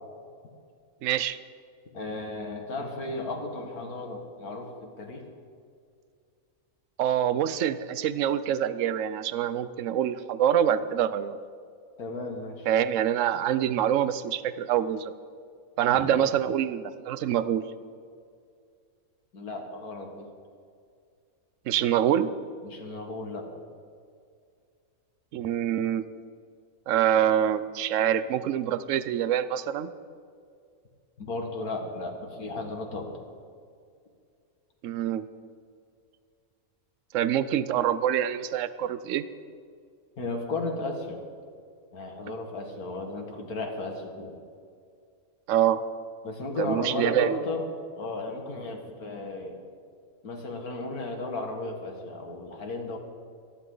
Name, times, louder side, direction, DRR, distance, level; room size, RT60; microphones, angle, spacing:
voice 1, 1.0-1.4 7.0-11.4 12.7-15.1 15.8-17.6 21.7-22.3 25.3-26.0 26.9-29.9 34.8-35.3 37.1-39.2 45.5-45.8 46.6-47.4, right 10 dB, 65° right, 14 dB, 1.0 m, -25 dB
voice 2, 1.9-5.2 12.0-12.7 15.9-16.3 19.3-20.3 22.6-23.5 31.2-33.3 40.2-41.2 41.9-44.3 46.2-47.7 48.0-49.6 50.2-53.0, left 2 dB, 80° left, 3 dB, 2.4 m, -34 dB
26.5 x 11.5 x 3.9 m, 2.3 s
omnidirectional pair, 1.5 m